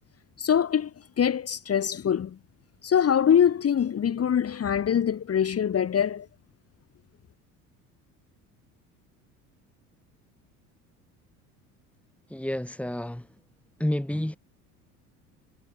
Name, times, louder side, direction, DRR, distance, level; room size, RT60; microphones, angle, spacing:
voice 1, 0.4-0.9 1.2-2.4 2.8-6.3, left 8 dB, 30° left, 2.0 m, -23 dB
voice 2, 12.3-13.3 13.8-14.4, left 1 dB, 5° left, 4.4 m, -29 dB
figure-of-eight pair, 65°, 45 cm